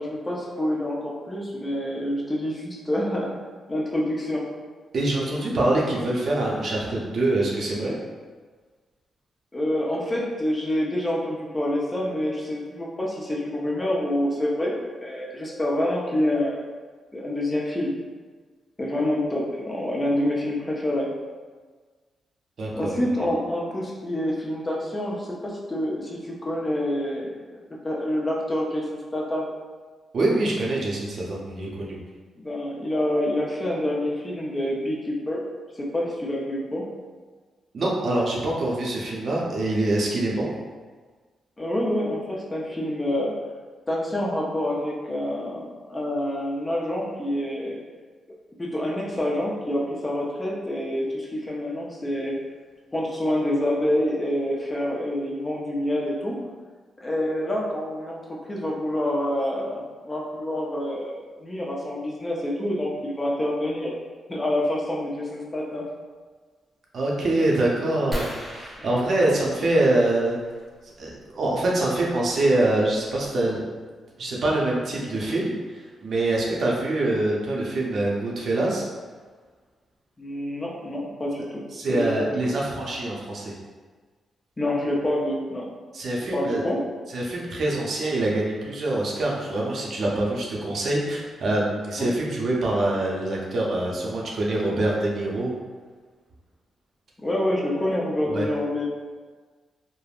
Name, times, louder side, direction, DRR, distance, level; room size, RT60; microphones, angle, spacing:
voice 1, 0.0-3.3 3.7-4.4 9.5-14.8 15.0-16.6 17.1-17.9 18.8-21.1 22.7-27.6 27.8-29.5 32.4-35.4 35.8-36.9 41.6-43.3 43.9-47.8 48.6-52.4 52.9-56.4 57.0-63.9 64.3-65.9 68.1-68.3 68.8-68.9 80.2-82.3 84.6-85.7 86.3-86.8 92.0-92.1 97.2-98.8, left 1 dB, 25° left, -3 dB, 0.6 m, -27 dB
voice 2, 4.9-7.9 22.6-22.9 30.1-32.0 37.7-40.5 66.9-70.4 71.0-73.6 74.2-78.8 81.7-83.5 85.9-86.6 87.1-95.5 98.3-98.5, right 2 dB, 60° right, -3 dB, 0.6 m, -25 dB
sound 1, 68.1-70.5 72.1-72.3 72.9-73.0 73.2-73.5, equal, 5° right, 0.9 m, -37 dB
3.3 x 2.0 x 2.4 m, 1.4 s
cardioid pair, 80°, 0 cm